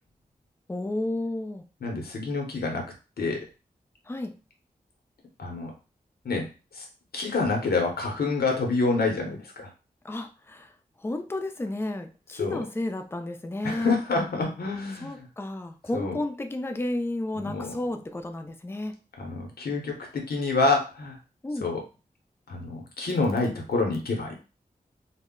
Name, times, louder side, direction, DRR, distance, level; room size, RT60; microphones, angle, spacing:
voice 1, 0.7-1.6 4.1-4.3 10.0-10.7 11.0-14.0 15.0-18.9 21.4-21.7, left 1 dB, 15° left, 6 dB, 0.4 m, -32 dB
voice 2, 1.8-2.8 3.2-3.4 5.4-5.7 6.2-6.5 6.7-6.9 7.1-9.7 12.4-12.6 13.6-15.3 15.9-16.2 17.4-17.7 19.2-21.2 21.6-21.8 22.5-24.3, left 3 dB, 80° left, 1 dB, 0.7 m, -27 dB
2.1 x 2.0 x 3.6 m, 0.33 s
cardioid pair, 45°, 16 cm